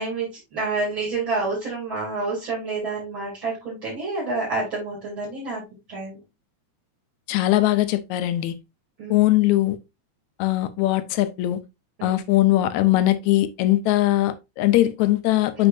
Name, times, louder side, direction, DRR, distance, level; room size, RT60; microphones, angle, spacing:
voice 1, 0.0-5.6 5.9-6.2 9.0-9.3 12.0-12.2, right 3 dB, 40° right, 3.6 m, -28 dB
voice 2, 7.3-8.6 9.1-9.8 10.4-11.6 12.0-15.7, left 15 dB, 80° left, 2.0 m, -20 dB
8.0 x 5.5 x 2.6 m
omnidirectional pair, 3.4 m